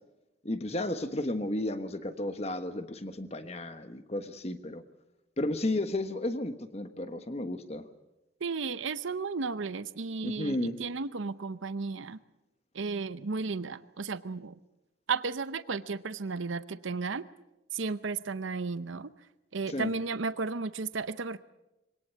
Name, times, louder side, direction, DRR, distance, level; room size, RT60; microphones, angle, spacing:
voice 1, 0.4-4.8 5.4-7.8 10.2-10.8 19.7-19.9, left 1 dB, 30° left, 10 dB, 1.3 m, -33 dB
voice 2, 8.4-12.2 12.7-14.5 15.1-17.2 17.7-19.1 19.5-21.4, right 4 dB, 75° right, 14 dB, 0.7 m, -34 dB
23.5 x 18.0 x 8.3 m, 0.96 s
head